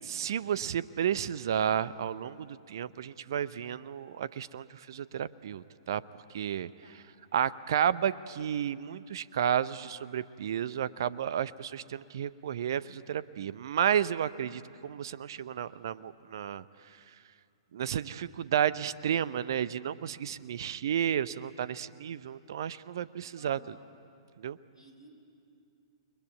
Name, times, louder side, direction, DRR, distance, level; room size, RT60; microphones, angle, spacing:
voice 1, 0.0-6.0 6.3-6.7 7.3-17.0 17.7-23.6 24.4-24.6, right 9 dB, 50° right, 18 dB, 0.7 m, -32 dB
voice 2, 23.4-23.9 24.7-25.1, left 1 dB, 85° left, 3 dB, 4.2 m, -55 dB
29.0 x 22.0 x 9.3 m, 2.5 s
figure-of-eight pair, 110°, 3 cm